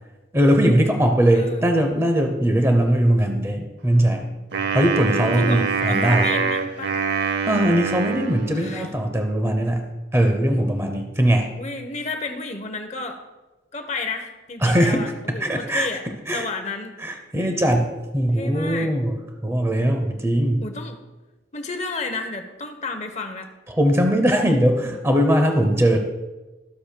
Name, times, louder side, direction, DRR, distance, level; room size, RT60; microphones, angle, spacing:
voice 1, 0.3-4.3 4.7-6.3 7.5-11.5 14.6-15.9 16.3-16.5 17.0-19.2 19.4-20.6 23.7-26.0, equal, 15° right, 5 dB, 0.7 m, -20 dB
voice 2, 1.3-1.7 5.4-7.0 8.4-8.9 11.6-13.2 13.7-16.1 16.3-17.0 18.3-18.9 20.6-21.0 21.5-23.5, left 3 dB, 35° left, 6 dB, 0.8 m, -32 dB
Wind instrument woodwind instrument, 4.5-9.0, right 5 dB, 55° right, 0.7 m, -25 dB
13.5 x 7.6 x 2.2 m, 1.1 s
head